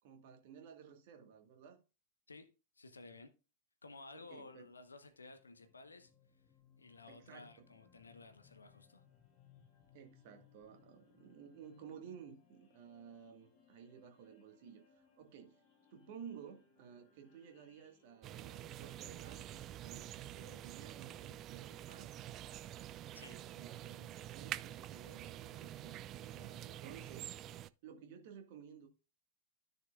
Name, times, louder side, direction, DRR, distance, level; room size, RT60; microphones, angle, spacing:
voice 1, 0.0-1.8 4.1-4.7 7.1-7.7 9.9-15.6 15.9-22.2 23.2-27.3 27.8-28.9, right 7 dB, 45° right, 1.6 m, -55 dB
voice 2, 2.8-3.3 3.8-6.1 6.8-9.0 23.1-23.4, left 3 dB, 75° left, 0.9 m, -55 dB
sound 1, 4.5-21.3, left 7 dB, 35° left, 2.7 m, -69 dB
sound 2, 18.2-27.7, right 12 dB, 30° right, 0.3 m, -47 dB
13.5 x 6.5 x 2.4 m
figure-of-eight pair, 95°, 0 cm